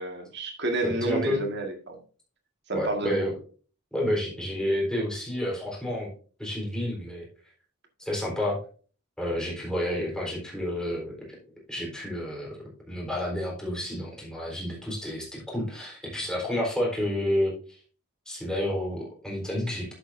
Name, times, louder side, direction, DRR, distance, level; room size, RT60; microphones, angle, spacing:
voice 1, 0.0-2.0 2.7-3.3, right 2 dB, 55° right, 1.8 m, -30 dB
voice 2, 0.8-1.4 2.7-3.3 3.9-6.1 6.4-7.3 8.0-8.6 9.2-11.1 11.7-12.6 12.9-17.8 18.3-19.9, left 1 dB, 5° left, 4.0 m, -30 dB
11.0 x 8.0 x 2.7 m
head